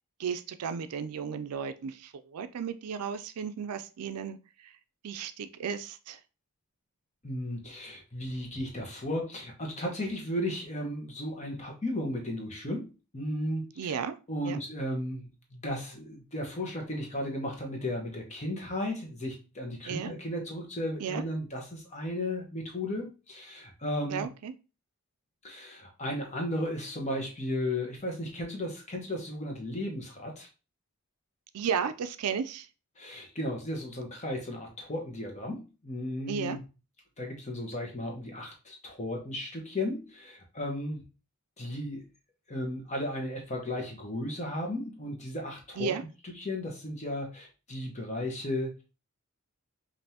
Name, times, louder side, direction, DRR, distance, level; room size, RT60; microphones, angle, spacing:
voice 1, 0.2-4.4 5.0-6.2 13.8-14.1 14.4-14.6 19.9-20.1 21.0-21.2 24.1-24.5 31.5-32.7 36.3-36.6 45.8-46.0, right 7 dB, 90° right, 11 dB, 0.4 m, -34 dB
voice 2, 7.2-24.3 25.4-30.5 33.0-36.7 37.2-41.0 41.6-42.1 42.5-45.9 46.2-48.7, left 1 dB, 30° left, 1 dB, 1.0 m, -35 dB
5.2 x 2.6 x 2.8 m, 0.32 s
head